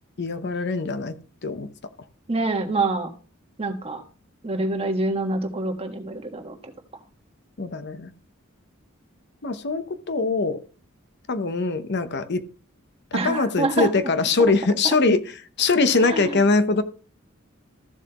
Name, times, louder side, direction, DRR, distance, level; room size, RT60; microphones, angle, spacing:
voice 1, 0.2-1.2 1.4-1.7 7.6-8.1 9.4-10.6 11.3-12.4 13.1-16.8, left 3 dB, 55° left, 11 dB, 0.8 m, -22 dB
voice 2, 2.3-3.1 3.6-4.0 4.4-6.6 13.1-13.9 16.0-16.3, right 2 dB, 30° right, 4 dB, 1.4 m, -26 dB
14.5 x 7.3 x 3.0 m, 0.38 s
head